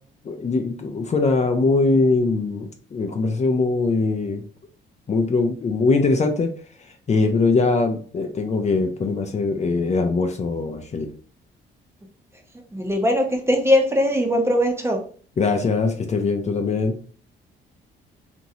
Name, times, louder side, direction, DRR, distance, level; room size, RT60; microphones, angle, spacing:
voice 1, 0.2-4.4 5.1-6.5 7.1-11.1 15.4-17.0, left 3 dB, 35° left, 5 dB, 0.5 m, -21 dB
voice 2, 12.7-15.0, left 1 dB, 10° right, 3 dB, 0.7 m, -20 dB
3.0 x 2.6 x 2.6 m, 0.43 s
cardioid pair, 90°, 20 cm